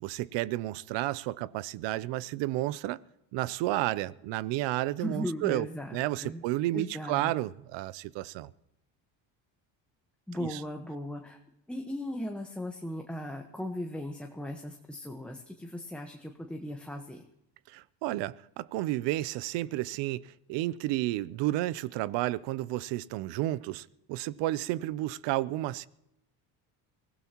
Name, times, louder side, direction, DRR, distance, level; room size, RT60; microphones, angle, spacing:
voice 1, 0.0-3.0 3.3-5.7 5.9-8.5 10.4-10.6 17.7-25.9, right 16 dB, 70° right, 0.7 m, -31 dB
voice 2, 5.0-6.4 6.7-7.3 10.3-11.4 11.7-17.2, left 1 dB, ahead, 1.2 m, -37 dB
23.0 x 16.5 x 3.0 m
supercardioid pair, 95°, 45 cm